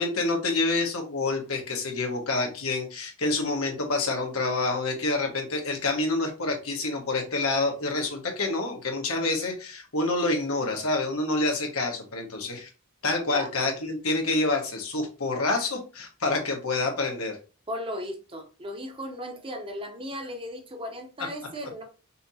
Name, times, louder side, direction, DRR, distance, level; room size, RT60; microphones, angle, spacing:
voice 1, 0.0-12.7 13.0-17.4, left 2 dB, 80° left, 1.3 m, -27 dB
voice 2, 17.7-21.8, equal, 25° right, 0.8 m, -36 dB
5.6 x 2.8 x 2.7 m
head